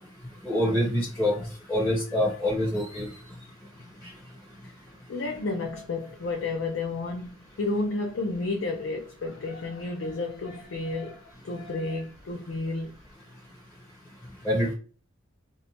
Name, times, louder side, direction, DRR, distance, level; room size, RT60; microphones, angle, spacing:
voice 1, 0.4-1.4 1.7-3.1 14.4-14.7, left 1 dB, 10° left, 1.0 m, -25 dB
voice 2, 2.1-2.4 4.6-4.7 5.1-12.9, left 3 dB, 60° left, 0.4 m, -32 dB
2.6 x 2.1 x 2.8 m
head